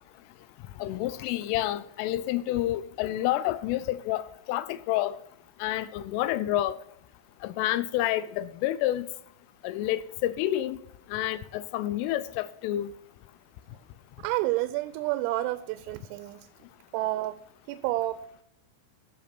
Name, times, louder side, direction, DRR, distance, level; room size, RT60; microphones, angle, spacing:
voice 1, 0.8-5.2 5.6-6.8 7.4-9.1 9.6-10.8 11.1-12.9, left 14 dB, 85° left, 3.0 m, -29 dB
voice 2, 14.2-16.5 16.9-18.2, right 16 dB, 85° right, 3.2 m, -30 dB
14.5 x 6.1 x 5.9 m
omnidirectional pair, 5.9 m